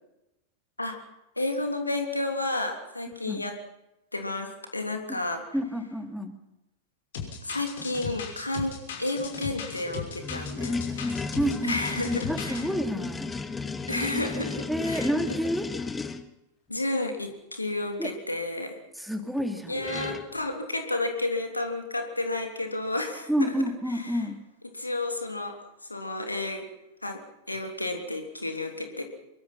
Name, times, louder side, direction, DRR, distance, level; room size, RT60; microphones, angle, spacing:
voice 1, 1.4-3.6 4.1-5.4 7.4-11.0 11.6-12.7 13.9-15.1 16.7-18.8 19.7-23.5 23.9-24.2 24.7-26.7 27.0-27.2 27.5-29.0, left 2 dB, 85° left, 5 dB, 3.2 m, -31 dB
voice 2, 5.5-6.3 11.4-11.8 12.1-13.3 14.7-15.7 18.0-18.1 19.0-19.8 23.3-24.4, equal, ahead, 6 dB, 3.0 m, -29 dB
sound 1, 7.1-12.6, left 7 dB, 60° left, 5.9 m, -37 dB
sound 2, 9.7-16.2 19.4-19.5 19.7-20.3, left 4 dB, 15° left, 1.5 m, -34 dB
24.0 x 23.5 x 5.9 m, 0.92 s
figure-of-eight pair, 90°, 0 cm